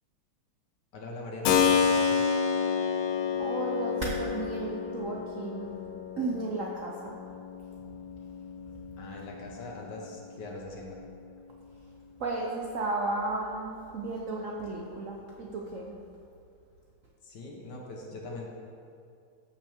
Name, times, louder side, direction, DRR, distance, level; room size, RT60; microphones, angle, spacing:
voice 1, 0.9-2.4 9.0-11.0 17.2-18.5, left 2 dB, 60° left, -1 dB, 1.6 m, -41 dB
Keyboard (musical), 1.4-10.1, left 6 dB, 85° left, 1.5 m, -30 dB
voice 2, 3.4-5.7 6.2-7.1 12.2-15.9, right 2 dB, 60° right, -2 dB, 0.8 m, -34 dB
13.5 x 5.9 x 3.6 m, 2.5 s
omnidirectional pair, 2.3 m